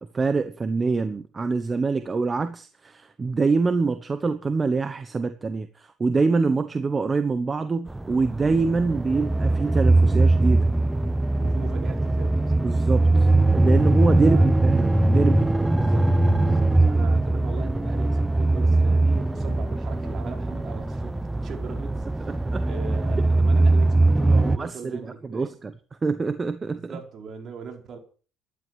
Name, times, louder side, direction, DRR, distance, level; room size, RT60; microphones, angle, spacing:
voice 1, 0.1-10.7 12.6-15.5 22.2-22.7 24.6-24.7 25.2-25.5 26.0-26.9, right 4 dB, 25° right, 1.2 m, -25 dB
sound 1, 7.9-24.6, right 2 dB, 10° right, 0.8 m, -21 dB
voice 2, 11.3-12.8 14.2-14.5 15.7-16.1 16.4-25.5 26.7-28.0, right 6 dB, 45° right, 4.7 m, -39 dB
12.5 x 11.5 x 7.5 m
cardioid pair, 105°, 0 cm